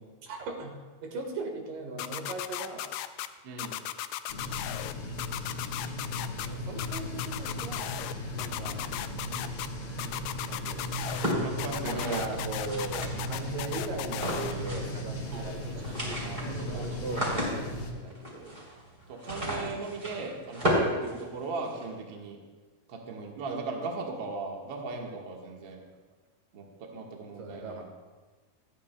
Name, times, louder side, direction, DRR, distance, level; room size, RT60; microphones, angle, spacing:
voice 1, 0.0-2.8 6.2-7.9 8.3-8.8 10.4-10.9 11.8-18.6 27.4-27.8, right 3 dB, 70° right, 2 dB, 3.1 m, -39 dB
sound 1, 2.0-3.3 3.6-4.9 5.2-6.5 6.8-8.1 8.4-9.7 10.0-11.3 11.6-14.5, left 13 dB, 80° left, 1.9 m, -36 dB
voice 2, 3.4-3.8 11.4-12.3 13.1-13.2 15.3-15.5 15.8-17.0 19.1-22.4 22.9-25.8 26.5-27.8, right 3 dB, 50° right, 0 dB, 1.5 m, -38 dB
sound 2, 4.3-17.9, left 1 dB, 65° left, 1.0 m, -37 dB
sound 3, 11.0-13.5 14.1-15.0 15.3-15.4 15.7-21.8, equal, 15° right, 2.9 m, -33 dB
27.0 x 9.7 x 2.2 m, 1.3 s
omnidirectional pair, 4.1 m